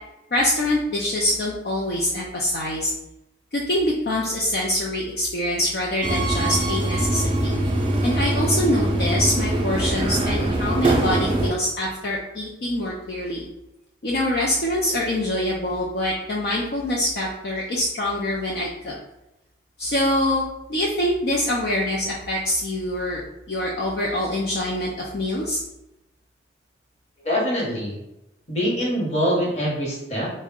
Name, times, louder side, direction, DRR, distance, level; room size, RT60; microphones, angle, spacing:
voice 1, 0.3-2.9 3.5-7.6 8.0-13.4 14.0-19.0 19.8-23.2 23.5-25.6, left 1 dB, 55° left, -3 dB, 0.4 m, -24 dB
Subway metro underground, 6.0-11.5, right 1 dB, 30° right, 0.4 m, -22 dB
voice 2, 27.2-28.0 28.5-30.3, equal, 35° left, -4 dB, 1.0 m, -24 dB
3.5 x 2.1 x 3.6 m, 0.91 s
head